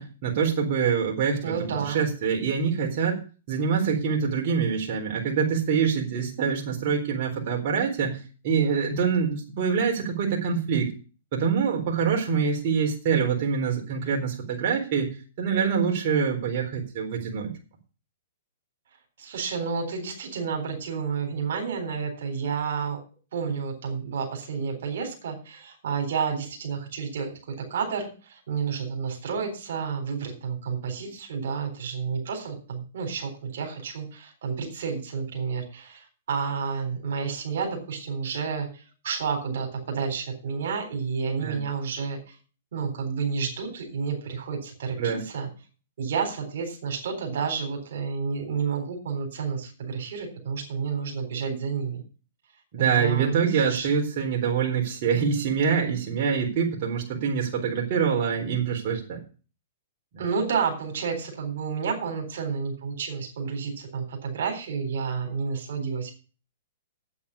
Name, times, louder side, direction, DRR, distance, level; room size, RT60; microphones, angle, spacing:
voice 1, 0.0-1.6 1.8-3.2 3.5-10.9 11.3-15.1 15.4-17.5 41.4-41.6 45.0-45.2 52.7-59.2, right 6 dB, 50° right, 0 dB, 4.0 m, -25 dB
voice 2, 1.4-2.0 19.2-23.0 23.3-42.4 42.7-45.5 46.0-52.0 52.8-54.0 60.2-66.1, right 6 dB, 70° right, 3 dB, 4.0 m, -30 dB
8.7 x 8.4 x 8.5 m, 0.37 s
hypercardioid pair, 130°, 0 cm